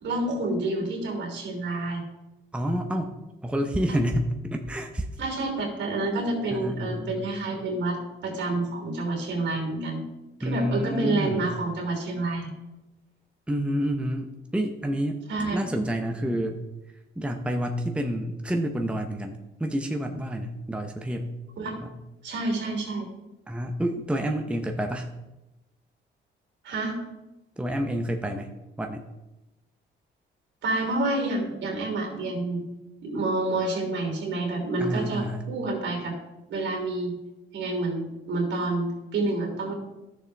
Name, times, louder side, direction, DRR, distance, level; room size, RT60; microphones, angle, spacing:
voice 1, 0.0-2.0 3.9-4.0 5.2-10.0 10.4-12.5 15.3-15.6 21.6-21.8 22.2-23.1 26.6-27.0 30.6-32.6 33.0-36.1 36.5-37.1 37.5-39.7, right 2 dB, 70° right, 0 dB, 3.1 m, -28 dB
voice 2, 2.5-3.1 3.4-5.1 6.5-7.2 10.4-11.5 13.5-15.2 15.5-16.6 17.2-21.3 21.8-22.0 23.5-25.1 27.6-28.5 28.8-29.0 34.8-35.5, equal, 5° right, 4 dB, 0.8 m, -29 dB
12.5 x 6.8 x 3.4 m, 1.0 s
cardioid pair, 90°, 20 cm